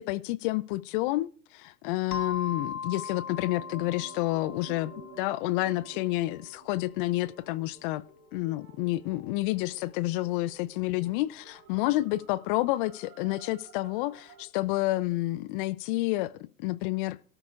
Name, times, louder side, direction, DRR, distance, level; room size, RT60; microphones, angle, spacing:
voice 1, 0.0-8.0 8.3-16.3 16.6-17.2, left 18 dB, 35° left, 0.5 m, -29 dB
sound 1, 2.1-6.5, left 6 dB, 75° left, 1.3 m, -39 dB
sound 2, 2.6-14.4, right 4 dB, 40° right, 2.1 m, -52 dB
17.5 x 12.5 x 2.5 m
figure-of-eight pair, 95°, 45 cm